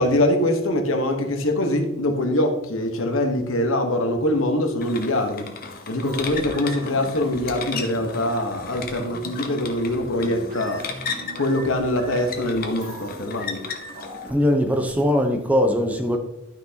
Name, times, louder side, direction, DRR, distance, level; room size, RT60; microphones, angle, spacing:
voice 1, 0.0-5.5 5.9-10.8 11.3-13.6, left 1 dB, 85° left, 1.3 m, -23 dB
sound 1, 4.8-14.3, left 5 dB, 45° left, 1.0 m, -35 dB
sound 2, 6.0-15.1, right 1 dB, 40° right, 2.6 m, -41 dB
voice 2, 14.3-16.2, left 1 dB, 5° right, 0.8 m, -21 dB
12.0 x 6.0 x 2.9 m
head